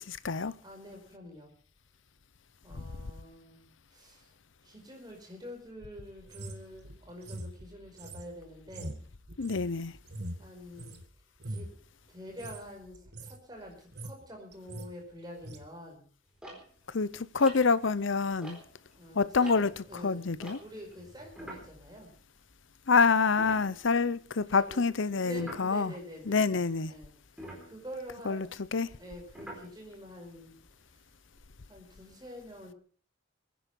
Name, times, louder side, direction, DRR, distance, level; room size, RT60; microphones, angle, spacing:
voice 1, 0.0-0.5 2.7-2.8 9.4-9.9 16.9-18.6 19.1-19.7 20.0-20.6 22.9-25.9 26.3-26.9 28.3-28.5 28.7-28.9, left 4 dB, 65° left, 0.7 m, -27 dB
voice 2, 0.6-1.5 2.6-4.3 4.6-9.0 10.4-11.0 11.5-11.7 12.1-16.1 18.9-20.2 20.6-22.1 24.5-24.8 25.2-27.1 27.7-28.5 28.8-30.5 31.7-32.8, equal, 20° right, 5.2 m, -47 dB
sound 1, 6.3-11.0 11.4-11.8 12.3-12.6 12.9-13.4 13.7-14.3 14.5-14.9 15.4-15.6, right 1 dB, 50° right, 1.7 m, -42 dB
sound 2, 16.4-18.9 19.3-22.7 23.0-23.1 23.4-24.2 25.3-25.7 27.3-30.1 30.8-31.4, right 1 dB, 5° right, 4.0 m, -48 dB
22.0 x 10.0 x 5.4 m
head